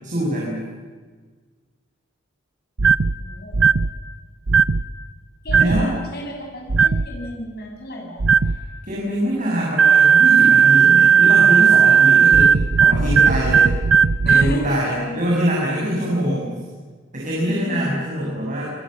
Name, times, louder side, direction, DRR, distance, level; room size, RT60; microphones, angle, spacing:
voice 1, 0.0-0.6 5.5-5.9 8.5-12.5 12.8-13.7 14.2-16.6 17.1-18.7, equal, 40° right, -4 dB, 6.8 m, -24 dB
sound 1, 2.8-3.1 3.5-3.9 4.5-4.8 5.5-5.9 6.7-7.1 8.2-8.6 9.8-14.6, right 6 dB, 70° right, 0.7 m, -14 dB
voice 2, 3.2-3.6 5.4-8.2 14.2-15.2 16.1-16.4 17.4-17.9, equal, 55° left, 0 dB, 6.9 m, -32 dB
28.0 x 22.5 x 7.6 m, 1.5 s
head